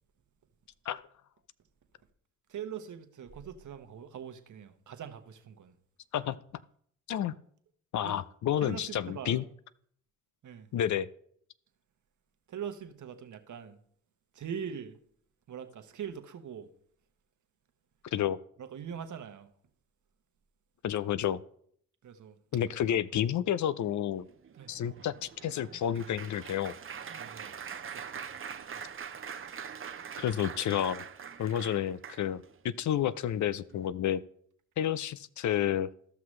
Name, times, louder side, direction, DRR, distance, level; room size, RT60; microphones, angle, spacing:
voice 1, 2.5-5.7 8.0-8.2 8.6-9.5 10.4-10.7 12.5-13.8 14.3-15.0 15.5-16.7 18.6-19.5 22.0-22.4 24.5-24.7 27.2-27.6 27.9-28.5, right 8 dB, 60° right, 1.1 m, -42 dB
voice 2, 7.9-9.4 10.7-11.1 18.1-18.4 20.8-21.4 22.5-24.3 24.7-26.7 30.2-31.0 31.4-34.2 34.8-35.9, left 10 dB, 60° left, 0.5 m, -30 dB
Applause, 24.2-32.5 33.2-33.4 33.7-33.9, right 7 dB, 40° right, 0.7 m, -43 dB
14.0 x 6.0 x 3.2 m
supercardioid pair, 55°, 33 cm